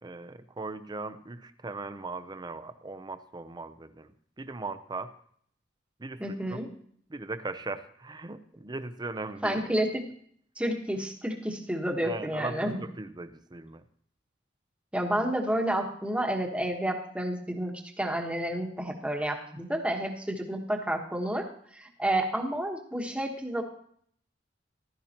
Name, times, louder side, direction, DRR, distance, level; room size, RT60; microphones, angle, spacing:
voice 1, 0.0-5.1 6.0-6.6 7.1-9.6 12.0-13.8, right 3 dB, 25° right, 11 dB, 0.6 m, -39 dB
voice 2, 6.2-6.7 9.4-10.0 10.6-12.8 14.9-21.5 21.7-23.6, right 1 dB, 5° right, 2 dB, 1.3 m, -30 dB
15.0 x 12.0 x 2.9 m, 0.63 s
head